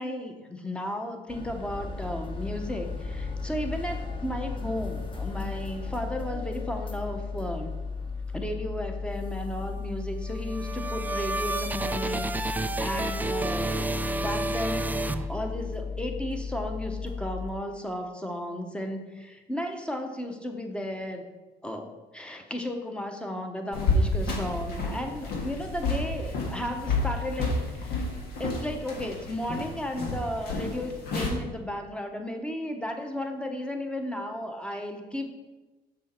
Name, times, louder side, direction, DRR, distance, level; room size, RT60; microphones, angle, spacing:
voice 1, 0.0-7.7 8.3-13.9 14.2-21.3 21.6-28.0 28.4-35.3, left 1 dB, 5° left, 5 dB, 1.0 m, -34 dB
sound 1, 1.3-17.5, left 4 dB, 30° left, 1.2 m, -35 dB
sound 2, 10.2-15.8, right 2 dB, 10° right, 0.3 m, -31 dB
sound 3, 23.7-31.3, left 2 dB, 70° left, 1.6 m, -30 dB
6.4 x 6.3 x 4.4 m, 1.2 s
cardioid pair, 110°, 17 cm